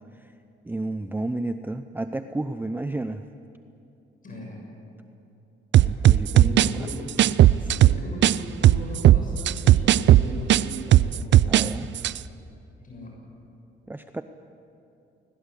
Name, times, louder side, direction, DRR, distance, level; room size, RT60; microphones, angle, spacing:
voice 1, 0.6-3.2 5.8-6.9 11.5-11.9 13.9-14.2, right 2 dB, 10° right, 9 dB, 0.7 m, -32 dB
voice 2, 4.2-4.6 6.2-7.1 7.6-11.6 12.8-13.2, left 1 dB, 45° left, -1 dB, 7.1 m, -38 dB
sound 1, 5.7-8.4 8.6-11.7 12.0-12.2, right 13 dB, 65° right, 0.5 m, -16 dB
21.0 x 20.0 x 8.3 m, 2.8 s
cardioid pair, 90°, 20 cm